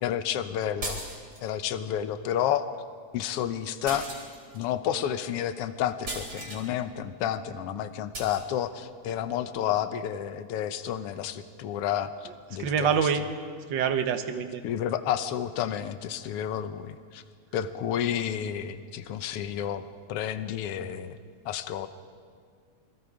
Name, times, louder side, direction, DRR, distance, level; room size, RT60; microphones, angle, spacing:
voice 1, 0.0-1.0 1.4-2.7 3.1-4.1 4.5-13.1 14.6-17.2 17.5-21.2 21.4-21.9, left 10 dB, 65° left, 11 dB, 1.6 m, -30 dB
sound 1, 0.8-1.5 3.9-4.6 6.1-6.7 8.1-8.4, right 2 dB, 35° right, 4.3 m, -37 dB
voice 2, 12.6-13.2 13.7-14.6, right 7 dB, 55° right, 7 dB, 1.4 m, -25 dB
28.0 x 22.0 x 4.9 m, 2.1 s
omnidirectional pair, 3.3 m